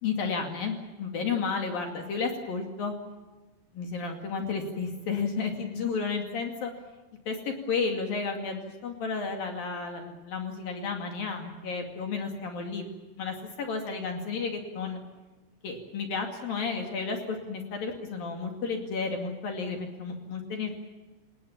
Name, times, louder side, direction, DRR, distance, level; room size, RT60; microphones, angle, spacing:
voice 1, 0.0-2.9 3.7-6.7 7.3-12.9 13.2-15.0 15.6-20.9, left 5 dB, 55° left, 3 dB, 3.8 m, -32 dB
29.5 x 19.0 x 7.3 m, 1.2 s
omnidirectional pair, 5.2 m